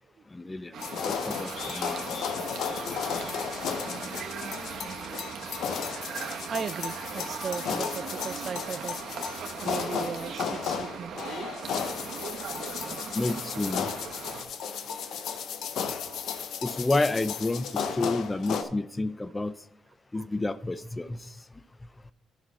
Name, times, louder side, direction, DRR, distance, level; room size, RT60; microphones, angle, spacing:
voice 1, 0.3-2.1 2.7-2.9 13.1-13.9 16.6-19.6 20.1-21.4, left 2 dB, 20° left, 15 dB, 0.4 m, -30 dB
sound 1, 0.7-14.4, right 7 dB, 70° right, 1.0 m, -39 dB
sound 2, 0.8-18.6, left 7 dB, 75° left, 0.7 m, -34 dB
voice 2, 4.6-5.5 6.1-9.0 9.6-12.2 14.6-15.3 16.1-16.2 20.1-20.2, right 6 dB, 50° right, 16 dB, 0.3 m, -39 dB
10.5 x 6.0 x 4.2 m, 0.73 s
cardioid pair, 90°, 0 cm